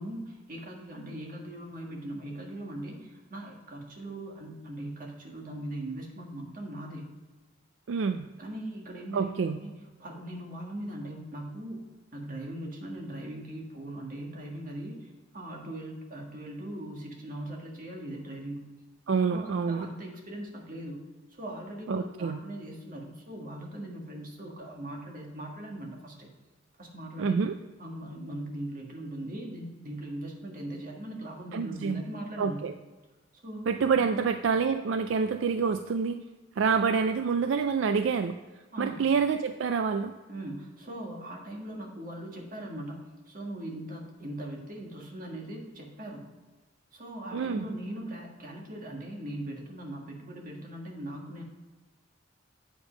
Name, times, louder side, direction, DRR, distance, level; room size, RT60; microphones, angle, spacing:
voice 1, 0.0-7.0 8.4-11.8 12.1-18.6 19.1-21.0 21.3-26.3 26.8-27.4 27.8-32.6 33.3-34.3 38.7-39.0 40.3-46.2 46.9-51.4, right 1 dB, 45° right, 0 dB, 1.6 m, -40 dB
voice 2, 7.9-8.3 9.1-9.6 19.1-19.9 21.9-22.4 27.2-27.5 31.5-32.0 32.4-32.7 33.7-36.2 36.6-38.4 38.8-40.1 47.3-47.6, right 5 dB, 75° right, 8 dB, 0.4 m, -27 dB
8.3 x 5.1 x 5.1 m, 1.2 s
head